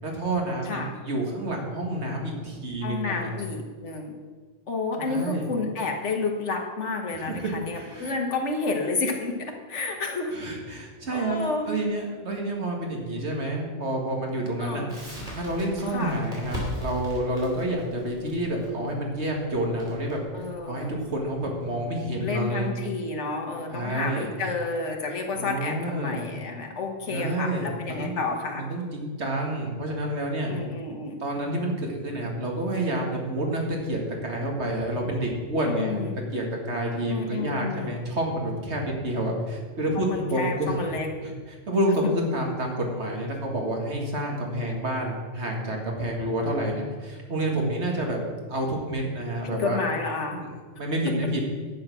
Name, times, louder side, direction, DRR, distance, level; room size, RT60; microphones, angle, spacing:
voice 1, 0.0-3.3 5.0-5.5 7.1-8.2 10.3-11.4 11.7-14.8 15.3-20.2 20.6-22.7 23.7-24.3 25.3-26.3 27.1-28.2 28.5-30.5 31.2-36.0 36.3-40.8 41.2-48.2 48.5-49.8 50.3-50.5 50.8-51.4, right 1 dB, 70° right, 0 dB, 2.3 m, -29 dB
voice 2, 2.8-4.1 4.7-10.3 11.1-11.7 14.6-14.9 15.9-16.2 20.3-20.9 22.2-28.7 30.5-31.2 35.7-36.1 37.1-38.0 40.0-41.1 49.4-50.4, left 3 dB, 80° left, 2 dB, 1.7 m, -30 dB
Crackle, 14.9-21.7, right 1 dB, 40° right, 3.7 m, -39 dB
10.5 x 7.8 x 6.1 m, 1.5 s
omnidirectional pair, 1.2 m